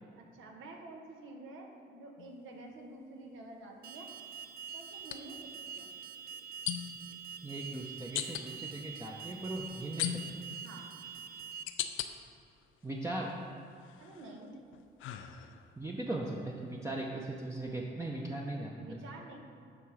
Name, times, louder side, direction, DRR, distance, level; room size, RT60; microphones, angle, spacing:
voice 1, 0.1-4.1 4.7-5.4 5.7-5.9 10.6-11.0 14.0-14.5 18.8-19.4, right 2 dB, 80° right, 1 dB, 1.2 m, -49 dB
sound 1, 2.2-2.4 5.0-5.2 6.7-7.1 8.1-8.5 10.0-10.5 11.2-12.1 12.6-13.3 13.8-15.8, left 10 dB, 85° left, 0.5 m, -38 dB
Alarm, 3.8-11.6, right 7 dB, 50° right, 0.4 m, -46 dB
voice 2, 7.4-10.5 12.8-13.3 15.8-19.0, right 2 dB, 15° right, -2 dB, 0.7 m, -39 dB
8.9 x 3.6 x 6.2 m, 2.6 s
cardioid pair, 90°, 20 cm